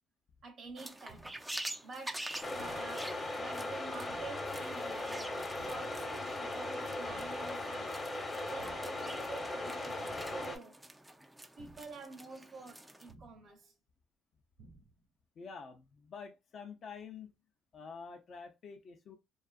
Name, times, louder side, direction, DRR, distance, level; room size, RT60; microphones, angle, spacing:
voice 1, 0.4-1.4 1.8-7.9 8.5-10.8 11.6-13.7, right 4 dB, 50° right, 0.7 m, -49 dB
sound 1, 0.8-13.1, right 1 dB, 10° right, 0.3 m, -47 dB
sound 2, 1.1-1.6 2.6-3.1 4.1-4.6 5.6-6.1 7.1-7.6 8.6-9.1 10.1-10.6 11.6-12.1 13.1-13.6 14.6-15.1, right 3 dB, 85° right, 0.7 m, -57 dB
sound 3, 2.4-10.6, left 2 dB, 25° left, 0.8 m, -38 dB
voice 2, 15.4-17.3 17.7-19.2, left 5 dB, 55° left, 0.5 m, -48 dB
2.5 x 2.4 x 2.3 m
cardioid pair, 85°, 0 cm